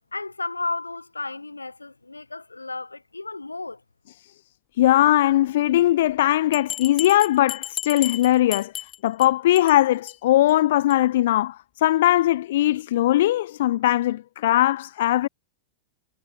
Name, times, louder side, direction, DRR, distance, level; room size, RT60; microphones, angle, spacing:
voice 1, 0.1-3.8, left 3 dB, 80° left, 6.0 m, -33 dB
voice 2, 4.8-8.7 9.0-15.3, left 14 dB, 55° left, 1.1 m, -20 dB
Bell, 6.5-9.3 9.6-9.8 10.1-10.2 10.5-10.6 10.9-11.0, left 11 dB, 30° left, 6.9 m, -33 dB
figure-of-eight pair, 90°, 0 cm